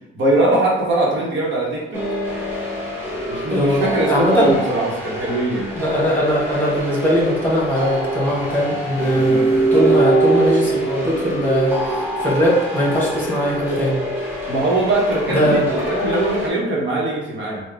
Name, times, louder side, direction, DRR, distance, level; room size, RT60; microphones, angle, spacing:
voice 1, 0.1-2.0 3.1-5.7 14.5-17.6, right 2 dB, 70° right, -3 dB, 1.2 m, -21 dB
sound 1, 1.9-16.5, right 2 dB, 10° right, 1.1 m, -23 dB
voice 2, 3.5-4.5 5.7-9.4 9.7-14.0 15.3-15.7, equal, 10° left, -4 dB, 1.5 m, -20 dB
3.6 x 2.3 x 3.4 m, 0.95 s
cardioid pair, 90°, 20 cm